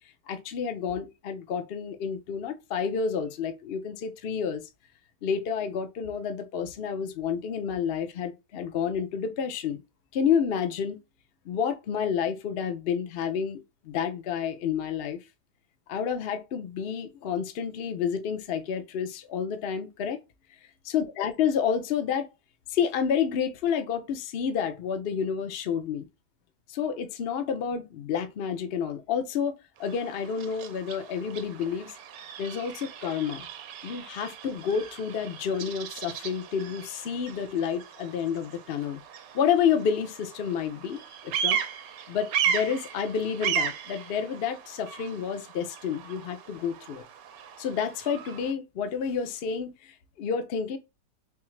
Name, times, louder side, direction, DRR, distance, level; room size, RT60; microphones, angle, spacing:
voice 1, 0.3-4.6 5.2-9.8 10.1-11.0 11.4-15.2 15.9-20.2 20.8-22.3 22.7-26.1 26.7-32.0 32.4-33.5 33.8-39.0 39.3-41.6 42.1-47.0 47.6-50.8, left 7 dB, 55° left, 0.6 m, -29 dB
Bird vocalization bird call bird song, 29.8-48.5, right 8 dB, 80° right, 1.3 m, -36 dB
3.6 x 3.4 x 3.2 m
omnidirectional pair, 1.9 m